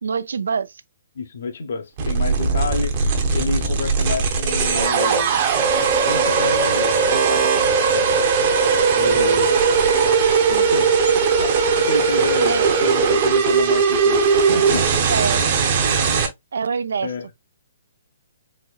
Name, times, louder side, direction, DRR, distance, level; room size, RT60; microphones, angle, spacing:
voice 1, 0.0-0.7 12.5-12.7 15.1-15.5 16.5-17.1, right 5 dB, 80° right, 0.4 m, -24 dB
voice 2, 1.1-2.9 3.3-5.4 6.1-8.2 8.9-9.6 10.5-10.9 11.4-14.9 17.0-17.3, left 4 dB, 55° left, 0.8 m, -29 dB
sound 1, 2.0-16.3, right 5 dB, 25° right, 0.7 m, -18 dB
4.2 x 2.7 x 2.3 m
hypercardioid pair, 175°, 0 cm